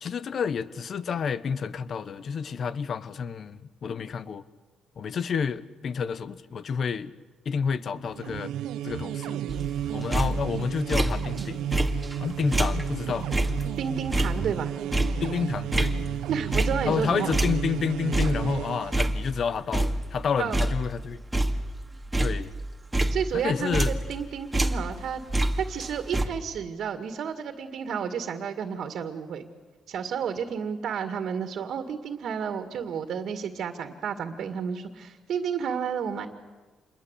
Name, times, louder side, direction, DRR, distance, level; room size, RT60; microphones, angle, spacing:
voice 1, 0.0-4.4 5.0-7.1 7.4-8.5 8.8-9.4 9.9-11.6 12.2-13.3 15.2-15.9 16.8-21.2 22.2-22.5 23.3-23.9, left 6 dB, 55° left, 1.1 m, -29 dB
sound 1, 8.1-19.1, right 11 dB, 90° right, 0.9 m, -33 dB
sound 2, 9.5-11.4 11.7-17.0 17.3-19.4 19.7-20.2 20.5-24.2 24.5-26.3, right 1 dB, 10° right, 2.2 m, -27 dB
voice 2, 13.8-14.7 16.3-17.3 20.4-20.6 23.1-25.2 25.6-29.5 29.9-36.3, right 7 dB, 65° right, 2.2 m, -31 dB
28.0 x 21.5 x 8.3 m
cardioid pair, 90°, 0 cm